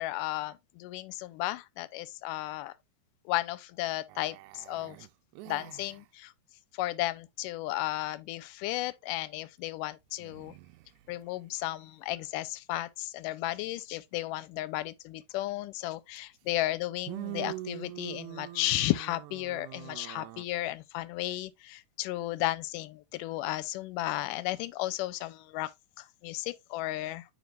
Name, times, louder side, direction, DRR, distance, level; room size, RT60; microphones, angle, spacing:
voice 1, 0.0-2.7 3.3-5.0 5.5-6.3 6.7-10.5 11.1-25.7 26.0-27.2, left 16 dB, 85° left, 2.2 m, -34 dB
sound 1, 4.1-6.1 10.2-11.1 16.2-16.3 17.1-20.4, right 18 dB, 80° right, 1.8 m, -44 dB
9.3 x 4.9 x 2.4 m
omnidirectional pair, 3.8 m